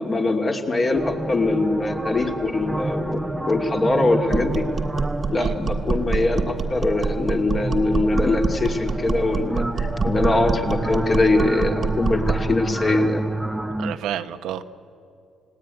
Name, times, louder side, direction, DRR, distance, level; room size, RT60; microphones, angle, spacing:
voice 1, 0.0-3.2 3.5-4.6 5.3-13.2, left 2 dB, 25° left, 3 dB, 2.4 m, -22 dB
sound 1, 0.9-14.0, right 1 dB, 10° right, 0.8 m, -30 dB
sound 2, 4.3-12.5, right 4 dB, 35° right, 1.5 m, -26 dB
voice 2, 13.8-14.6, right 11 dB, 80° right, 9 dB, 1.0 m, -29 dB
29.5 x 18.0 x 9.7 m, 2.5 s
cardioid pair, 135°, 0 cm